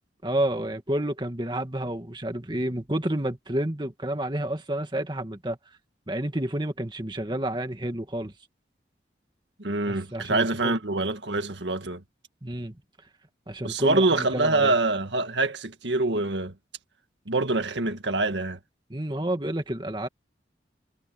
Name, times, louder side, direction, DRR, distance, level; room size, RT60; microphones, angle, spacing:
voice 1, 0.2-5.6 6.1-8.3 9.9-10.8 12.4-12.7 13.5-14.7 18.9-20.1, right 1 dB, 25° right, 2.1 m, -30 dB
voice 2, 9.6-12.0 13.6-16.5 17.3-18.6, right 2 dB, 85° right, 1.8 m, -25 dB
head